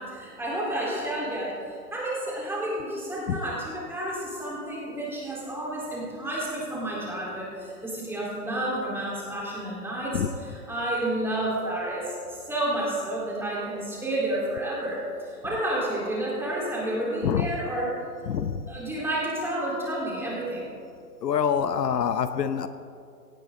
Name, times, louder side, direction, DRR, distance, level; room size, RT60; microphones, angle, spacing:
voice 1, 0.0-18.0 18.7-20.7, right 1 dB, 5° right, -6 dB, 4.0 m, -30 dB
voice 2, 18.3-18.6 21.2-22.7, left 8 dB, 80° left, 11 dB, 1.0 m, -25 dB
17.5 x 15.0 x 3.9 m, 2.4 s
hypercardioid pair, 135°, 48 cm